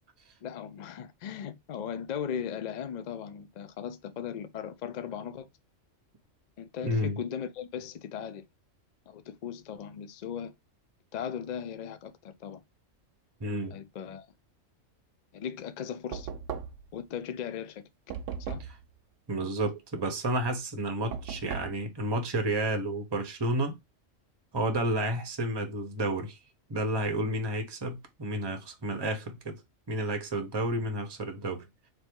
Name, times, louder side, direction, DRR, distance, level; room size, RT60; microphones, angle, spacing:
voice 1, 0.4-5.5 6.6-8.4 9.1-10.5 11.1-12.6 13.7-14.3 15.3-16.3 16.9-17.8 18.4-18.6 21.3-21.4, left 8 dB, 65° left, 0.4 m, -38 dB
voice 2, 6.8-7.2 13.4-13.8 19.3-23.8 24.5-26.4 26.7-29.6 29.9-31.6, right 1 dB, 25° right, 0.6 m, -31 dB
Knock, 16.1-17.0 18.1-18.8 21.1-21.8, right 7 dB, 70° right, 0.9 m, -37 dB
3.4 x 2.7 x 4.4 m
omnidirectional pair, 1.4 m